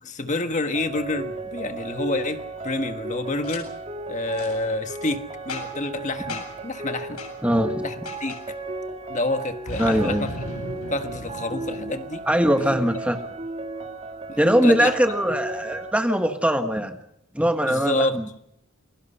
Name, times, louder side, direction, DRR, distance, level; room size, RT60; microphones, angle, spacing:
voice 1, 0.0-3.7 4.1-7.2 7.8-8.3 9.1-10.3 10.9-12.2 13.2-13.3 14.3-14.9 17.6-18.2, left 2 dB, 35° left, 7 dB, 1.4 m, -28 dB
sound 1, 0.7-15.9, right 2 dB, 25° right, 1.7 m, -35 dB
Boom, 3.4-3.6 4.3-4.5 5.5-5.9 6.3-6.7 7.2-7.3 8.1-8.4 9.7-12.4, left 2 dB, 80° left, 7.5 m, -36 dB
voice 2, 7.4-7.8 9.8-10.3 12.3-13.2 14.4-17.0 17.3-18.3, equal, 5° right, 6 dB, 1.4 m, -21 dB
28.5 x 22.0 x 5.6 m, 0.79 s
head